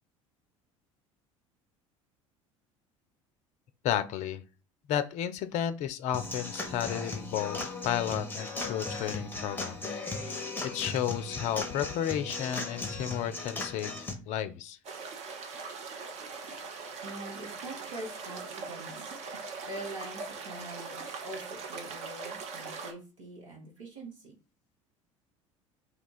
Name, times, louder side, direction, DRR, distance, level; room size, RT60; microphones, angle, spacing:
voice 1, 3.8-4.4 4.9-14.8, left 10 dB, 45° left, 11 dB, 0.4 m, -33 dB
Human voice / Acoustic guitar / Drum, 6.1-14.1, left 3 dB, 10° left, 0.8 m, -37 dB
sound 1, 14.8-22.9, right 4 dB, 40° right, 0.7 m, -41 dB
voice 2, 17.0-19.1 19.6-21.0 21.2-24.4, right 1 dB, 75° right, -1 dB, 1.3 m, -43 dB
2.8 x 2.3 x 4.1 m, 0.33 s
figure-of-eight pair, 65°, 17 cm